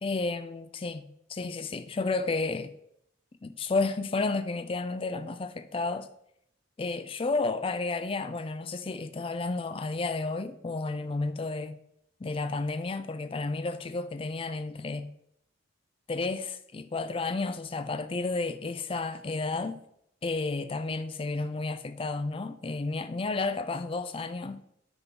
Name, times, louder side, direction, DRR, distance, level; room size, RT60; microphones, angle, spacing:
voice 1, 0.0-2.7 3.4-6.1 6.8-11.8 12.2-15.1 16.1-19.8 20.2-24.6, left 3 dB, 25° left, 0.3 m, -32 dB
9.1 x 3.8 x 3.7 m
head